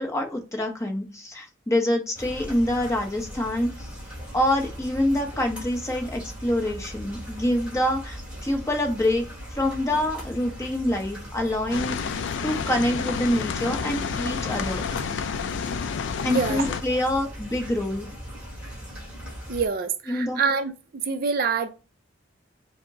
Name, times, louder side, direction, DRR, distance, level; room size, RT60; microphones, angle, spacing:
voice 1, 0.0-3.9 4.3-9.3 9.5-12.0 12.4-15.3 16.2-18.1 20.1-20.4, left 1 dB, 15° left, 0.7 m, -26 dB
sound 1, 2.1-19.7, equal, 5° right, 1.2 m, -39 dB
sound 2, 11.7-16.8, left 6 dB, 65° left, 0.3 m, -30 dB
voice 2, 16.3-16.6 19.5-20.7 21.0-21.7, right 5 dB, 45° right, 0.4 m, -25 dB
5.0 x 2.0 x 3.5 m
head